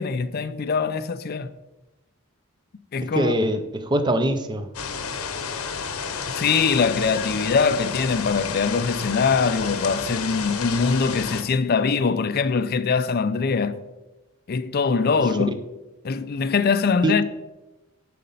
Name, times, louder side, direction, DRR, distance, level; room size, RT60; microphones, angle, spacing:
voice 1, 0.0-1.5 2.9-3.4 6.3-13.8 14.5-15.5 16.0-17.2, left 5 dB, 45° left, 0.4 m, -22 dB
voice 2, 3.0-4.7 17.0-17.2, right 1 dB, 20° right, 0.5 m, -23 dB
sound 1, 4.7-11.4, left 5 dB, 75° left, 0.8 m, -31 dB
10.5 x 4.2 x 5.5 m
head